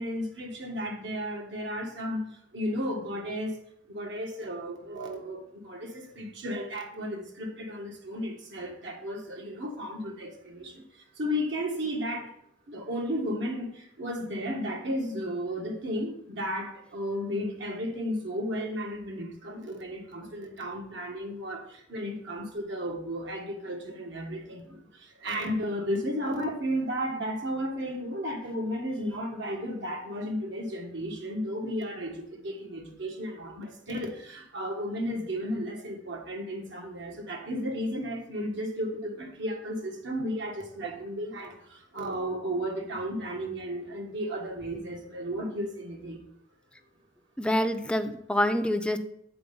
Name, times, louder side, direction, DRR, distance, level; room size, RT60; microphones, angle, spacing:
voice 1, 0.0-3.6 3.9-12.3 12.7-46.2, equal, 70° right, 1 dB, 1.6 m, -34 dB
voice 2, 47.4-49.0, left 1 dB, 5° left, 8 dB, 0.5 m, -26 dB
7.8 x 4.3 x 5.4 m, 0.72 s
head